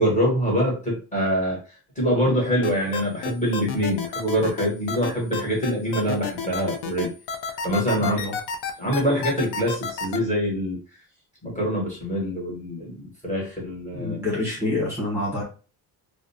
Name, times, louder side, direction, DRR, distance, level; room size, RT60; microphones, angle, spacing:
voice 1, 0.0-1.6 2.0-7.1 7.4-8.2 8.8-10.8 11.4-14.2, equal, 20° left, -4 dB, 1.1 m, -24 dB
sound 1, 2.6-10.2, left 5 dB, 80° left, 0.5 m, -30 dB
voice 2, 8.0-8.3 13.9-15.4, left 1 dB, 5° right, -6 dB, 1.0 m, -27 dB
2.4 x 2.1 x 2.7 m, 0.35 s
cardioid pair, 155°, 39 cm